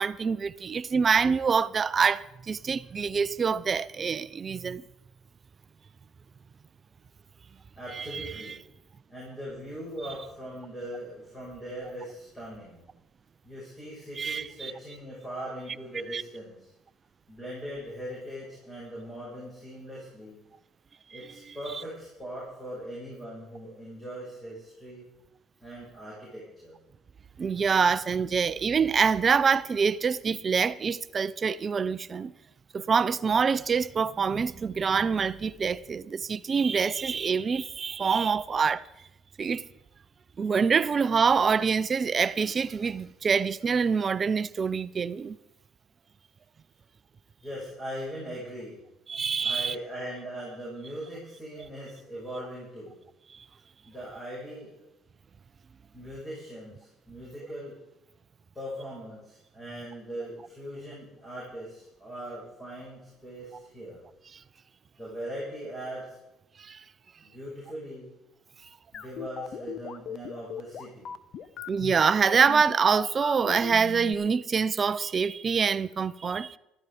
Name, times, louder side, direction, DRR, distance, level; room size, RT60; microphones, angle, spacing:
voice 1, 0.0-4.8 7.9-8.3 14.2-14.7 16.1-16.2 27.4-32.3 32.7-38.8 39.4-39.6 40.4-45.4 49.1-49.7 66.6-66.8 71.7-76.6, right 6 dB, 30° right, 0.6 m, -25 dB
voice 2, 7.8-8.6 9.1-12.9 13.4-16.7 17.3-20.4 21.1-25.0 25.6-26.8 47.4-48.8 49.4-53.0 53.9-54.7 55.9-57.8 58.5-64.0 65.0-66.2 67.2-68.1 68.9-71.1, equal, 10° left, 6.6 m, -40 dB
sound 1, 68.9-74.1, left 8 dB, 50° left, 0.9 m, -38 dB
15.0 x 14.0 x 5.0 m
cardioid pair, 115°, 0 cm